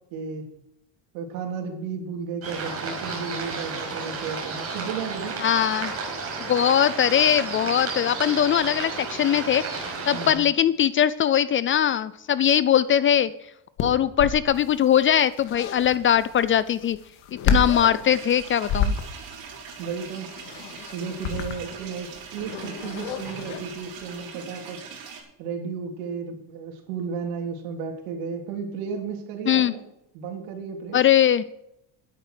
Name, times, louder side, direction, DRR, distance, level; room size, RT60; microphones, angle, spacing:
voice 1, 0.1-0.5 1.1-5.4 10.1-10.5 19.8-20.3 20.9-24.8 25.4-29.9 30.1-31.0, right 5 dB, 85° right, 2 dB, 3.5 m, -33 dB
sound 1, 2.4-10.3, right 4 dB, 30° right, 5.5 m, -32 dB
voice 2, 5.4-5.9 6.5-13.3 13.8-17.0 17.4-18.9 29.5-29.7 30.9-31.4, left 10 dB, 30° left, 17 dB, 0.4 m, -21 dB
sound 2, 13.8-24.1, left 5 dB, 60° left, 2.1 m, -31 dB
sound 3, 18.1-25.2, right 6 dB, 50° right, 5.8 m, -42 dB
13.0 x 11.0 x 5.0 m, 0.82 s
cardioid pair, 135°, 45 cm